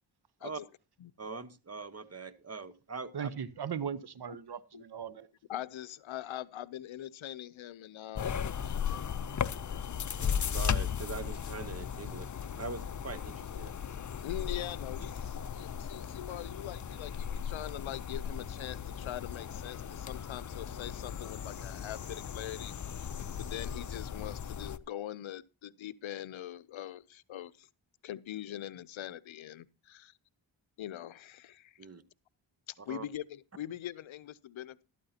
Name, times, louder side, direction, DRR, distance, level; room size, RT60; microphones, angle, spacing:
voice 1, 1.2-3.3 10.1-13.7 31.8-32.0 32.9-33.0, right 4 dB, 30° right, 1.1 m, -42 dB
voice 2, 3.1-5.3, right 7 dB, 55° right, 1.0 m, -38 dB
voice 3, 5.5-9.8 11.7-11.8 12.1-12.2 13.7-13.8 14.1-23.1 23.4-27.7 28.0-30.1 30.8-31.8 32.7-34.8, left 12 dB, 75° left, 0.7 m, -43 dB
sound 1, 8.1-24.8, left 8 dB, 40° left, 0.6 m, -37 dB
13.0 x 12.5 x 2.8 m
cardioid pair, 65°, 47 cm